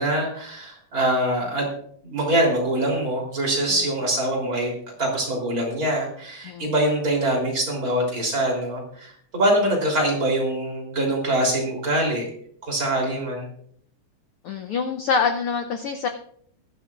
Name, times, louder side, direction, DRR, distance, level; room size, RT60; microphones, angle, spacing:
voice 1, 0.0-1.7 2.0-4.7 5.0-12.2 12.7-13.5, right 1 dB, 30° right, -1 dB, 3.7 m, -24 dB
voice 2, 14.4-16.1, left 5 dB, 90° left, 6 dB, 1.2 m, -25 dB
20.5 x 11.5 x 2.5 m, 0.63 s
omnidirectional pair, 3.4 m